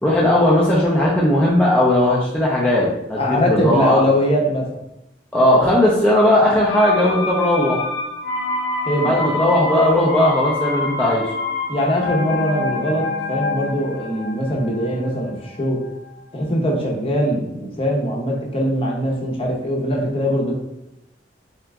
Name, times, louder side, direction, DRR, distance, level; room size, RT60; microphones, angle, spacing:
voice 1, 0.0-4.0 5.3-7.8 9.0-11.3, left 1 dB, 5° left, -6 dB, 0.5 m, -17 dB
voice 2, 3.2-4.7 8.8-9.1 11.7-15.8 16.3-20.5, equal, 30° left, -2 dB, 0.8 m, -21 dB
sound 1, 6.7-16.4 16.7-16.8, left 3 dB, 75° left, 0.6 m, -27 dB
3.4 x 2.9 x 3.5 m, 0.88 s
head